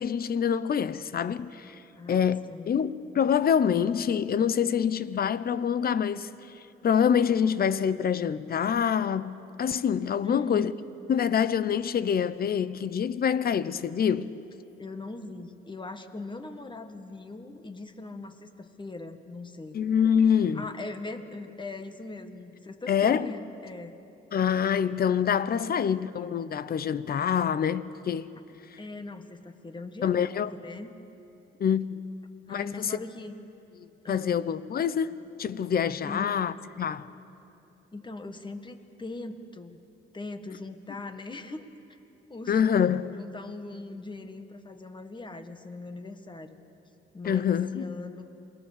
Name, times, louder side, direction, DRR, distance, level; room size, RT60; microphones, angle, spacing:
voice 1, 0.0-1.8 2.1-6.3 6.8-10.7 11.1-14.3 19.7-20.7 22.9-23.3 24.3-28.3 30.0-30.5 31.6-32.0 32.5-33.0 34.1-37.1 42.5-43.2 47.2-47.9, left 8 dB, 50° left, 0.9 m, -26 dB
voice 2, 1.9-2.7 10.2-10.7 14.8-19.8 20.5-23.9 25.6-25.7 28.8-31.0 32.5-33.3 34.0-34.4 36.0-36.3 37.9-39.8 40.1-41.7 42.3-42.6 43.1-46.6 47.1-48.2, left 2 dB, 25° left, 1.7 m, -40 dB
27.5 x 21.0 x 6.8 m
cardioid pair, 90°, 20 cm